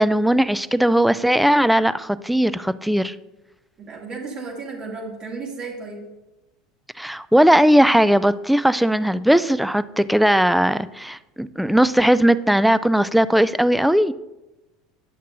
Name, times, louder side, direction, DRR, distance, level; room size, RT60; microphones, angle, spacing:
voice 1, 0.0-3.1 7.0-14.1, equal, ahead, 15 dB, 0.3 m, -18 dB
voice 2, 3.8-6.0, right 4 dB, 35° right, -1 dB, 2.4 m, -33 dB
10.0 x 6.5 x 2.6 m, 1.0 s
hypercardioid pair, 80°, 2 cm